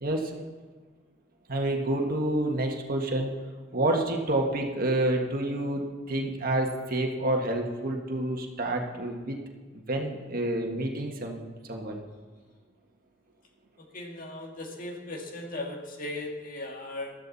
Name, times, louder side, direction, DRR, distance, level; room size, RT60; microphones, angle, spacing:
voice 1, 0.0-0.4 1.5-3.3 3.7-9.4 9.7-11.4 11.7-12.0, right 1 dB, 45° right, 2 dB, 1.6 m, -28 dB
voice 2, 13.9-17.1, left 2 dB, 45° left, 2 dB, 1.9 m, -37 dB
15.5 x 13.0 x 4.1 m, 1.4 s
head